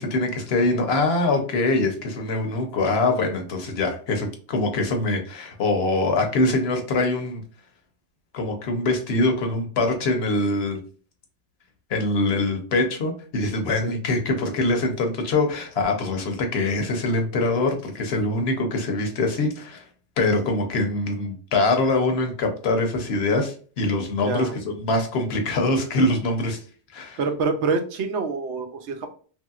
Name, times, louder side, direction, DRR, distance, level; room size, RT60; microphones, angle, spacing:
voice 1, 0.0-7.4 8.3-10.8 11.9-19.8 20.2-26.6 26.9-27.2, left 2 dB, 65° left, 4 dB, 0.9 m, -23 dB
voice 2, 24.2-24.5 27.2-29.1, right 4 dB, 75° right, 6 dB, 0.8 m, -26 dB
3.0 x 2.7 x 2.3 m, 0.41 s
omnidirectional pair, 1.2 m